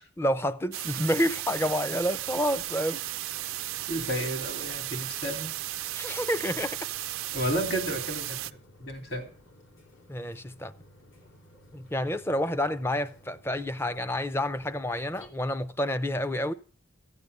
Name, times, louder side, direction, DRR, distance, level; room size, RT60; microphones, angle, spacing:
voice 1, 0.2-3.0 5.8-6.9 10.1-10.7 11.7-16.5, equal, 10° left, 0.5 m, -29 dB
sound 1, 0.7-8.5, right 15 dB, 85° right, 0.5 m, -35 dB
sound 2, 0.8-15.3, equal, 70° left, 2.9 m, -56 dB
voice 2, 3.9-5.5 7.3-9.3, equal, 50° left, 3.0 m, -32 dB
14.5 x 8.5 x 6.7 m
head